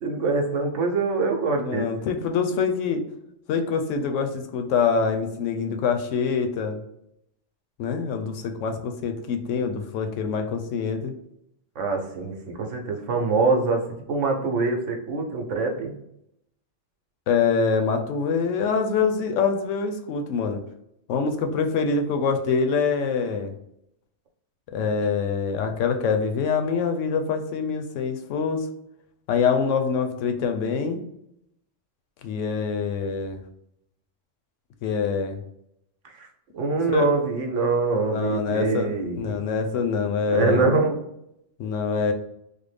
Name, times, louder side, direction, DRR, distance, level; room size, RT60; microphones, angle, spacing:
voice 1, 0.0-1.9 11.8-15.9 36.0-36.3 36.5-39.4 40.3-41.0, right 3 dB, 80° right, 3 dB, 1.0 m, -24 dB
voice 2, 1.5-3.0 3.5-6.8 7.8-11.1 17.3-20.6 21.1-23.5 24.7-28.7 29.3-31.0 32.2-33.4 34.8-35.4 36.9-37.0 38.1-40.6 41.6-42.1, left 5 dB, 90° left, 6 dB, 0.9 m, -25 dB
3.3 x 2.1 x 3.3 m, 0.78 s
omnidirectional pair, 1.2 m